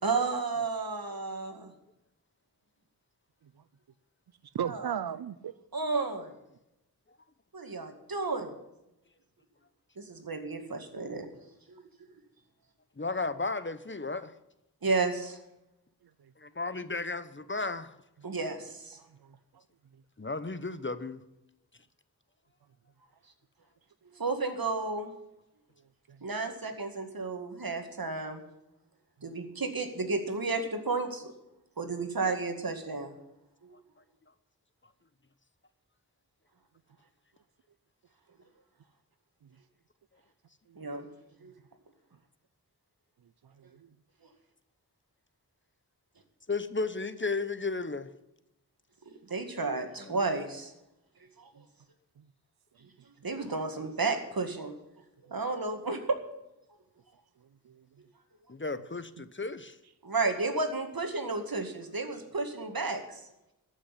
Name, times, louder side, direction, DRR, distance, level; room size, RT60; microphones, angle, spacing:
voice 1, 0.0-1.7 4.7-4.9 5.7-6.3 7.5-8.5 10.0-11.4 11.7-11.8 14.8-15.4 18.2-19.0 24.2-25.1 26.2-28.4 29.2-31.3 31.8-33.2 33.6-33.7 40.8-41.1 41.4-41.5 49.1-50.7 51.4-51.5 53.2-54.7 55.3-56.2 60.0-63.2, right 3 dB, 70° right, 2.1 m, -32 dB
voice 2, 4.5-5.5 16.2-16.3 19.0-19.4 26.1-26.2 29.2-29.3 39.4-39.5 40.7-40.8 43.4-43.9 52.2-52.3 57.4-57.9, right 9 dB, 90° right, 0.6 m, -38 dB
voice 3, 13.0-14.3 16.4-17.9 20.2-21.2 46.5-48.1 50.0-50.2 58.5-59.8, left 3 dB, 30° left, 0.9 m, -34 dB
14.0 x 6.4 x 9.8 m
wide cardioid pair, 45°, 37 cm